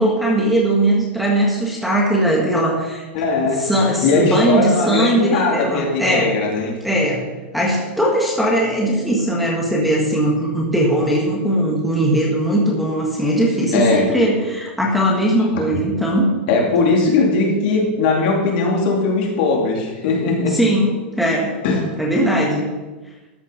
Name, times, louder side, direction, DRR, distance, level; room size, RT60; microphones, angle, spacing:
voice 1, 0.0-3.0 3.6-6.3 6.8-7.3 7.5-16.3 20.5-21.5 22.0-22.7, right 1 dB, ahead, -2 dB, 1.6 m, -19 dB
voice 2, 3.1-3.6 4.0-6.7 13.7-14.1 15.7-15.8 16.5-20.6 21.6-21.8, left 3 dB, 55° left, -1 dB, 2.6 m, -19 dB
13.0 x 5.8 x 5.0 m, 1.2 s
supercardioid pair, 155°, 6 cm